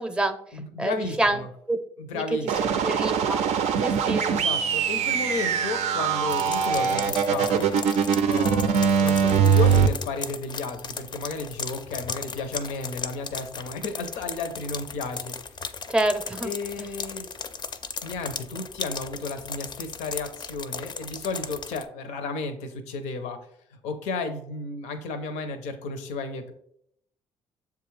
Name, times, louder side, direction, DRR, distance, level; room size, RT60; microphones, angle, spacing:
voice 1, 0.0-0.4 0.8-1.4 1.7-1.8 2.1-2.2 2.6-3.4 3.8-4.2 15.9-16.5, right 1 dB, 10° right, 8 dB, 0.5 m, -26 dB
voice 2, 0.5-1.5 2.0-2.8 4.3-7.7 8.3-15.6 16.4-17.3 18.0-23.4 23.8-26.5, left 3 dB, 85° left, 8 dB, 0.6 m, -33 dB
sound 1, 2.5-9.9, right 7 dB, 75° right, 0.4 m, -22 dB
sound 2, 6.3-21.8, left 5 dB, 40° left, 0.4 m, -37 dB
6.7 x 2.3 x 3.1 m, 0.70 s
supercardioid pair, 65°, 12 cm